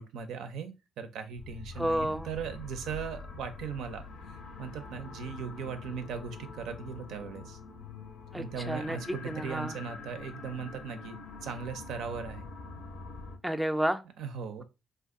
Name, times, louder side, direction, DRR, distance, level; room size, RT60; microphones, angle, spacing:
voice 1, 0.0-4.0 4.6-7.6 8.4-12.5 14.2-14.6, right 6 dB, 80° right, 0.5 m, -38 dB
sound 1, 1.4-13.4, left 4 dB, 65° left, 0.6 m, -45 dB
voice 2, 1.8-2.3 8.3-9.0 9.3-9.8 13.4-14.0, right 1 dB, ahead, 0.4 m, -30 dB
2.5 x 2.3 x 3.6 m
cardioid pair, 90°, 0 cm